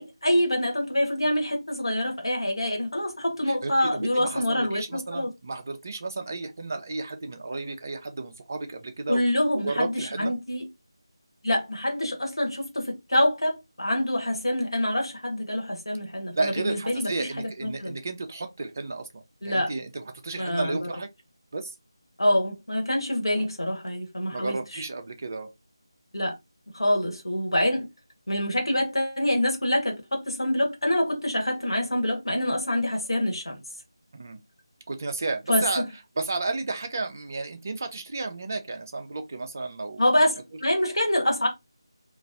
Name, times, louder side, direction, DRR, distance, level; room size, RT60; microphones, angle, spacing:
voice 1, 0.0-5.3 9.1-10.7 11.4-17.9 19.4-19.7 20.4-20.9 22.2-24.8 26.1-26.3 26.7-27.8 28.3-33.6 35.5-35.9 40.0-41.5, left 1 dB, 70° left, 1.4 m, -26 dB
voice 2, 3.6-9.2 9.6-10.3 16.3-21.1 21.5-21.7 23.3-23.5 24.3-25.5 34.1-34.4 34.9-35.8 36.2-40.2, right 3 dB, 35° right, 0.5 m, -32 dB
3.0 x 2.5 x 2.6 m
figure-of-eight pair, 165°, 3 cm